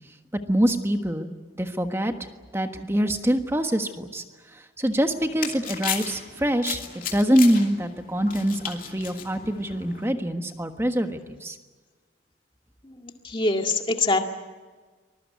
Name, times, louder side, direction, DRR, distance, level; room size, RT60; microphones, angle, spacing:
voice 1, 0.5-1.3 1.5-2.1 2.5-4.2 4.5-11.6, equal, 15° right, 6 dB, 1.4 m, -24 dB
sound 1, 4.9-10.1, left 8 dB, 45° left, 2.7 m, -35 dB
voice 2, 12.8-14.2, left 2 dB, 25° left, 4 dB, 2.0 m, -24 dB
24.0 x 21.0 x 9.5 m, 1.4 s
head